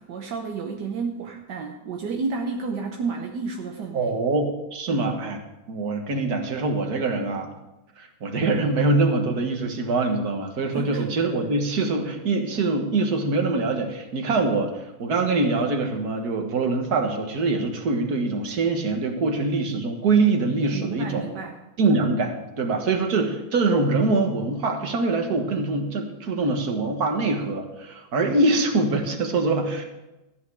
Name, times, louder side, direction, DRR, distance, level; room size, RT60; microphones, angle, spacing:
voice 1, 0.0-4.1 4.9-5.1 10.7-11.1 20.7-21.6, right 4 dB, 80° right, 2 dB, 1.6 m, -31 dB
voice 2, 3.9-5.4 5.7-7.5 8.0-14.7 15.0-21.3 21.8-29.8, right 3 dB, 65° right, 4 dB, 2.0 m, -24 dB
13.5 x 9.5 x 4.8 m, 0.98 s
omnidirectional pair, 1.8 m